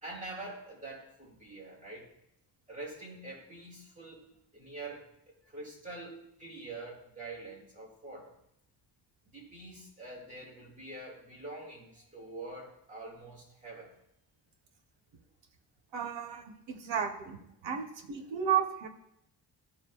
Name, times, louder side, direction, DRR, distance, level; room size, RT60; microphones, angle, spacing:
voice 1, 0.0-2.1 2.7-5.1 5.4-8.3 9.3-13.9, right 2 dB, 15° right, -5 dB, 2.0 m, -45 dB
voice 2, 15.9-18.9, right 8 dB, 90° right, 5 dB, 1.0 m, -33 dB
13.0 x 4.7 x 2.4 m, 0.77 s
wide cardioid pair, 175°, 43 cm